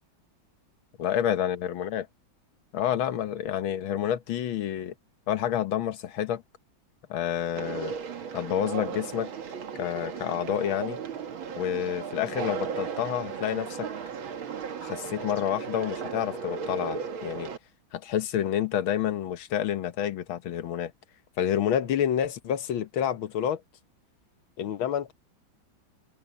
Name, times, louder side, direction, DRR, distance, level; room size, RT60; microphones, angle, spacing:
voice 1, 1.0-2.1 2.7-4.9 5.3-6.4 7.1-7.9 8.3-9.3 9.8-11.0 11.6-13.9 14.8-17.5 17.9-20.9 21.4-23.6 24.6-25.1, left 10 dB, 85° left, 1.9 m, -29 dB
Conversation, 7.6-17.6, right 6 dB, 80° right, 2.5 m, -36 dB
omnidirectional pair, 2.2 m